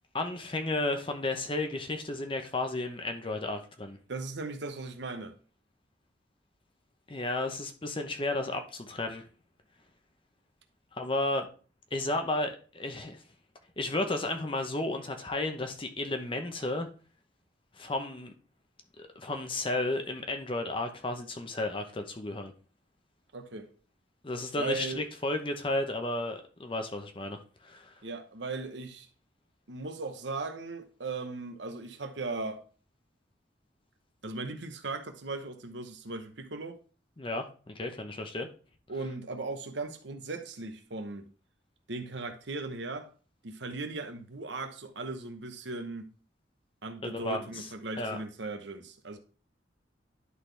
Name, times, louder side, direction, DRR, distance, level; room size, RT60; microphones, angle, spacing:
voice 1, 0.1-4.0 7.1-9.2 10.9-11.5 11.9-13.2 13.8-16.9 17.7-18.3 19.0-22.5 24.2-27.9 37.2-38.5 47.0-47.7 48.0-48.2, left 2 dB, 30° left, 0.9 m, -33 dB
voice 2, 4.1-5.4 23.3-23.7 24.6-25.0 28.0-29.1 29.7-32.6 34.2-36.8 38.9-41.2 41.9-43.1 43.4-46.1 46.8-49.2, right 3 dB, 70° right, 1.0 m, -38 dB
11.0 x 4.1 x 3.3 m
head